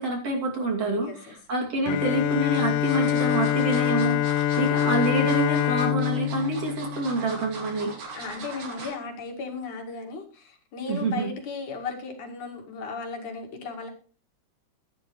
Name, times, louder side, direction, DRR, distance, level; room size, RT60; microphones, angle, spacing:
voice 1, 0.0-7.9 10.9-11.3, right 2 dB, 50° right, 3.6 m, -27 dB
voice 2, 1.0-1.4 8.2-13.9, left 4 dB, 70° left, 3.6 m, -36 dB
sound 1, 1.1-1.6 2.3-9.0 9.4-9.6 9.9-10.0, right 3 dB, 75° right, 4.7 m, -41 dB
Bowed string instrument, 1.9-7.7, left 11 dB, 90° left, 2.4 m, -25 dB
15.5 x 10.0 x 3.1 m
omnidirectional pair, 3.7 m